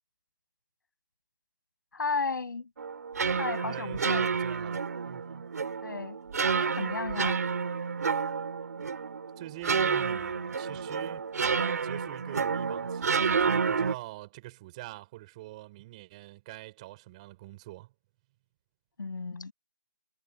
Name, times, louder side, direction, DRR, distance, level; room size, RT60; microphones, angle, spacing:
voice 1, 1.9-2.7 3.4-4.3 5.8-6.2 6.5-7.4 19.0-19.5, left 4 dB, 75° left, 6.6 m, -34 dB
sound 1, 2.8-14.0, right 5 dB, 55° right, 3.8 m, -30 dB
voice 2, 3.6-5.5 9.4-11.3 11.6-17.9, right 18 dB, 20° right, 5.3 m, -44 dB
hypercardioid pair, 165°, 11 cm